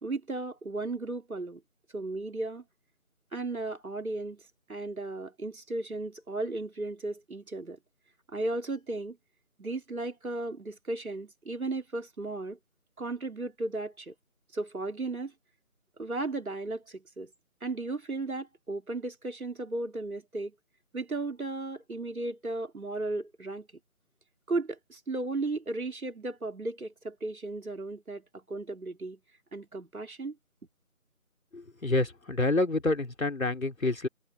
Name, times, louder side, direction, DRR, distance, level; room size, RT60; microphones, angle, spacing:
voice 1, 0.0-1.6 1.9-2.6 3.3-4.4 4.7-7.8 8.3-9.2 9.6-12.6 13.0-14.1 14.5-15.3 16.0-17.3 17.6-20.5 20.9-23.7 24.5-29.2 29.5-30.4, right 2 dB, 75° right, 3.4 m, -35 dB
voice 2, 31.5-34.1, left 2 dB, 70° left, 4.5 m, -28 dB
figure-of-eight pair, 180°, 43 cm